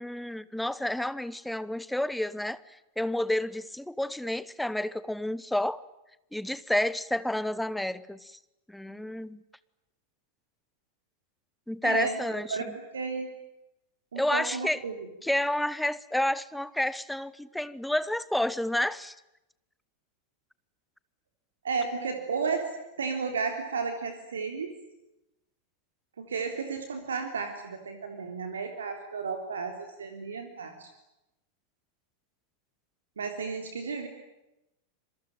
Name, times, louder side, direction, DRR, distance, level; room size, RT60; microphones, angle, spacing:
voice 1, 0.0-5.8 6.3-8.4 8.7-9.4 11.7-12.6 14.2-14.8 15.2-19.1, left 1 dB, 5° left, 1.1 m, -30 dB
voice 2, 11.8-12.2 12.5-13.3 14.1-15.1 21.6-22.7 23.0-24.7 26.2-30.9 33.2-34.1, right 5 dB, 70° right, 3.5 m, -33 dB
27.5 x 23.0 x 9.0 m
figure-of-eight pair, 90°, 0 cm